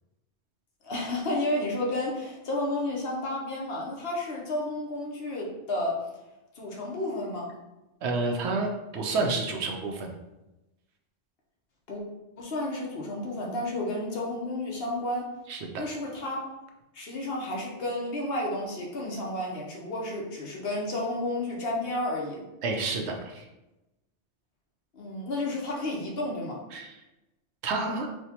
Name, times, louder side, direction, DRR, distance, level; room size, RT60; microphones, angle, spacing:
voice 1, 0.8-6.0 6.6-7.5 11.9-12.0 12.4-15.3 15.8-16.5 16.9-22.4 24.9-26.6, left 1 dB, 60° left, -2 dB, 0.9 m, -31 dB
voice 2, 8.0-10.1 15.5-15.8 22.6-23.4 26.7-27.0 27.6-28.1, right 3 dB, 70° right, 2 dB, 0.8 m, -29 dB
4.5 x 2.2 x 2.8 m, 0.99 s
omnidirectional pair, 1.2 m